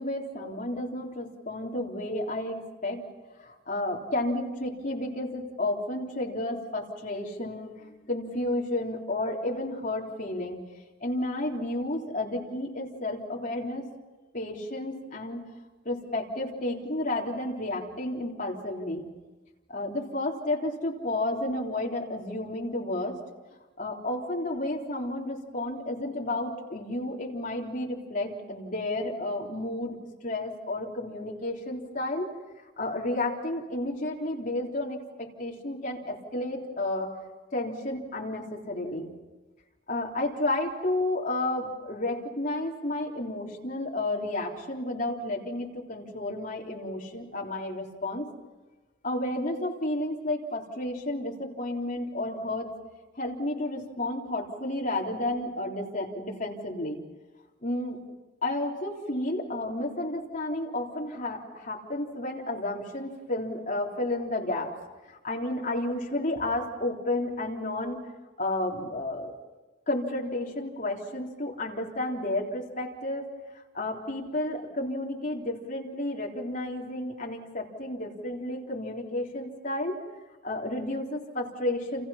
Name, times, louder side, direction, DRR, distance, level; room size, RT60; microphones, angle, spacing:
voice 1, 0.0-3.0 3.4-7.7 8.1-10.6 11.0-13.9 14.3-15.4 15.9-19.0 19.7-23.2 23.8-30.0 30.2-32.3 32.8-37.1 37.5-39.1 39.9-48.3 49.0-52.7 53.1-57.0 57.6-58.0 58.4-64.7 65.1-68.0 68.4-69.3 69.9-73.3 73.7-80.0 80.4-82.1, left 1 dB, 45° left, -1 dB, 3.6 m, -31 dB
29.5 x 28.0 x 5.8 m, 1.2 s
head